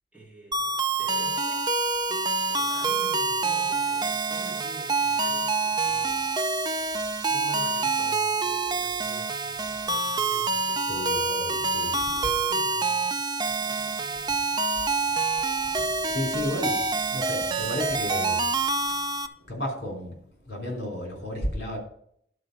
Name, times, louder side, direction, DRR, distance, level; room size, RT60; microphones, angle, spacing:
voice 1, 0.1-6.3 7.3-13.2 13.6-14.9, right 2 dB, 5° right, 2.2 m, -47 dB
sound 1, 0.5-19.3, right 3 dB, 20° right, 0.4 m, -26 dB
voice 2, 10.9-12.3 15.1-18.6 18.9-19.1 19.4-21.8, left 1 dB, 60° left, 3.4 m, -34 dB
11.5 x 4.7 x 6.5 m
head